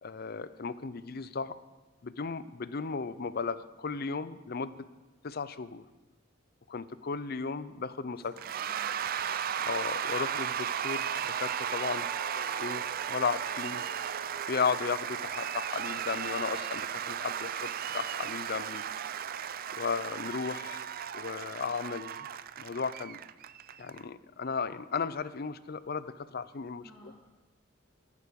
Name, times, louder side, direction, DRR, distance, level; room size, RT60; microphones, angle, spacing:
voice 1, 0.0-1.5 2.0-4.9 5.2-5.8 6.7-8.3 9.6-12.1 12.6-13.8 14.5-18.8 19.7-20.9 21.1-22.3 22.6-23.2 23.8-27.1, left 5 dB, 50° left, 15 dB, 0.6 m, -35 dB
voice 2, 8.1-9.6 26.8-27.1, equal, 10° left, -6 dB, 2.3 m, -57 dB
Cheering / Applause / Crowd, 8.4-24.0, right 8 dB, 45° right, 0.4 m, -35 dB
sound 1, 10.5-15.6, left 1 dB, 20° right, 2.1 m, -52 dB
13.0 x 11.5 x 5.3 m, 1.2 s
head